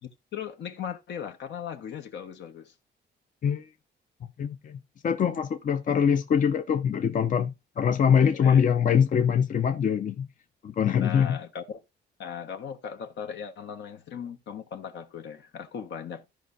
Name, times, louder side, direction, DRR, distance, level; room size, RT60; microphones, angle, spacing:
voice 1, 0.0-2.7 8.3-8.7 11.0-11.8 12.2-16.3, left 8 dB, 75° left, 1.3 m, -38 dB
voice 2, 4.4-10.3 10.6-11.4, left 7 dB, 45° left, 0.6 m, -23 dB
14.5 x 5.1 x 2.6 m
cardioid pair, 115°, 19 cm